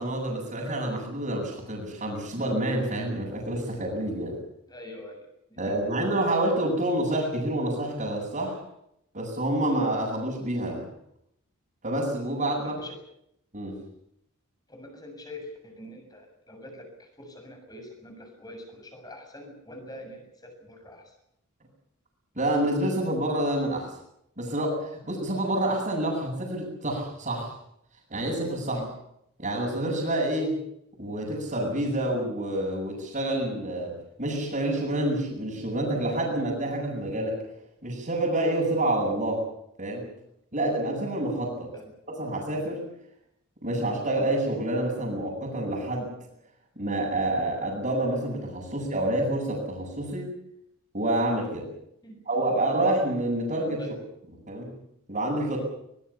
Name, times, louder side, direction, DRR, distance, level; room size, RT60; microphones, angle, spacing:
voice 1, 0.0-4.3 5.6-8.6 9.1-10.8 11.8-12.7 13.5-13.8 22.4-23.9 24.4-27.5 28.1-28.8 29.4-30.6 31.0-33.9 34.2-37.4 37.8-39.4 39.8-40.1 40.5-41.7 42.1-42.8 43.6-46.1 46.8-50.3 50.9-51.7 52.3-53.8 54.5-54.7 55.1-55.6, right 1 dB, 35° right, -6 dB, 7.7 m, -28 dB
voice 2, 4.7-5.7 12.6-13.0 14.7-21.2 28.6-28.9 41.7-41.9 52.0-52.2 53.8-53.9, left 1 dB, 15° left, 4 dB, 7.1 m, -44 dB
23.5 x 21.0 x 7.1 m, 0.75 s
head